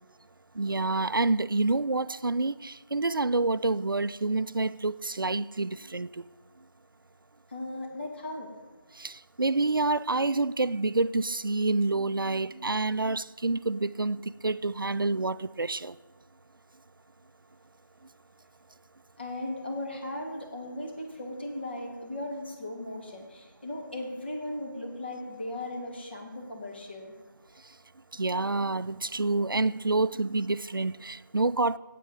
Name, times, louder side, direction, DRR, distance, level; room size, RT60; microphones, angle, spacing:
voice 1, 0.6-6.1 9.0-9.1 9.4-15.9 28.2-31.8, right 3 dB, 85° right, 0.4 m, -28 dB
voice 2, 7.5-8.5 19.2-27.1, left 1 dB, 30° left, 1.9 m, -37 dB
8.5 x 8.2 x 7.2 m
figure-of-eight pair, 165°, 11 cm